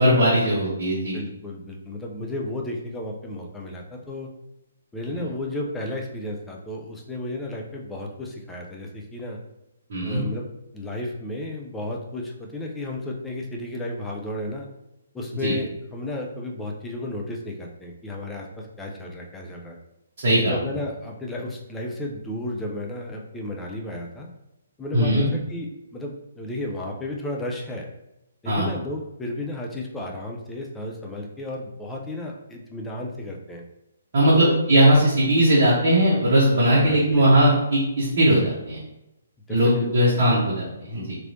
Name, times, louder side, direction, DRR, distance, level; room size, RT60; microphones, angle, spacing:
voice 1, 0.0-1.2 9.9-10.2 15.4-15.5 20.2-20.6 24.9-25.3 28.4-28.7 34.1-38.8 39.5-41.2, right 1 dB, 45° right, -7 dB, 0.9 m, -19 dB
voice 2, 1.1-4.3 4.9-9.4 10.0-10.5 10.7-14.7 15.1-19.8 20.3-24.3 24.8-27.9 28.4-33.6 34.3-34.6 36.8-37.2 39.5-40.2, left 1 dB, 5° left, -1 dB, 0.4 m, -33 dB
3.0 x 2.9 x 2.7 m, 0.92 s
figure-of-eight pair, 130°, 0 cm